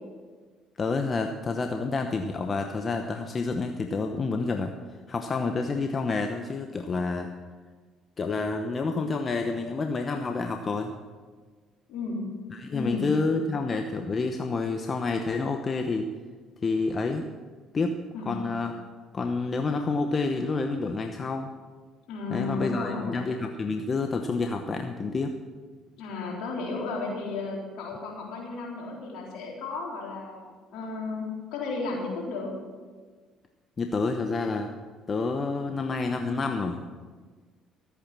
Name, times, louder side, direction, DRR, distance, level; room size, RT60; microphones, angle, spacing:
voice 1, 0.8-4.7 5.1-7.3 8.2-10.9 12.5-16.1 16.6-17.3 17.7-18.0 18.2-18.7 19.1-21.5 22.3-25.4 33.8-34.7 35.1-36.8, left 3 dB, 40° left, 5 dB, 0.9 m, -28 dB
voice 2, 12.7-13.1 18.1-18.3 22.1-23.2 26.0-30.4 30.7-32.5, left 3 dB, 70° left, -3 dB, 4.0 m, -33 dB
13.5 x 8.6 x 6.1 m, 1.5 s
hypercardioid pair, 60°, 0 cm